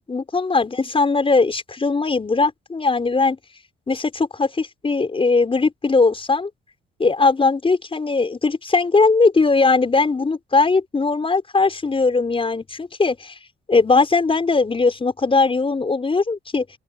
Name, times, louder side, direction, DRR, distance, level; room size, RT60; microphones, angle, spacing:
voice 1, 0.1-3.4 3.9-6.5 7.0-13.4 13.7-16.7, left 3 dB, 25° left, 5.9 m, -19 dB
open air
cardioid pair, 90°, 20 cm